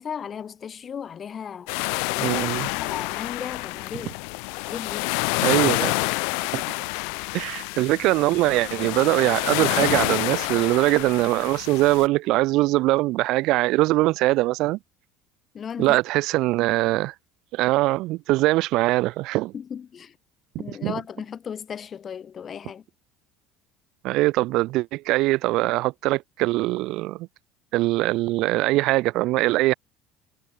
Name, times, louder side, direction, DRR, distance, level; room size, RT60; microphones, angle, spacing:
voice 1, 0.0-4.2 4.7-5.2 15.5-16.0 19.5-20.1 20.6-22.8, left 7 dB, 40° left, 5.6 m, -36 dB
sound 1, 1.7-12.1, left 40 dB or more, 70° left, 1.8 m, -28 dB
voice 2, 2.2-2.7 5.4-5.9 6.5-6.6 7.3-14.8 15.8-17.1 17.5-19.5 20.5-21.0 24.0-27.3 27.7-29.7, right 19 dB, 60° right, 2.6 m, -22 dB
hypercardioid pair, 70°, 0 cm